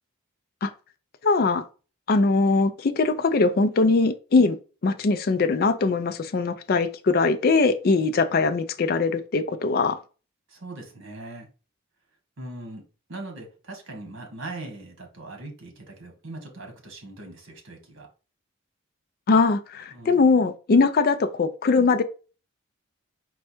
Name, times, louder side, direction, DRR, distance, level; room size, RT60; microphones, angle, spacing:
voice 1, 1.2-1.6 2.1-4.6 4.8-10.0 19.3-22.0, left 4 dB, 45° left, 0.4 m, -21 dB
voice 2, 10.5-11.5 12.4-12.8 13.1-18.1 19.9-20.2, right 2 dB, 60° right, 1.3 m, -40 dB
4.3 x 2.3 x 4.3 m
head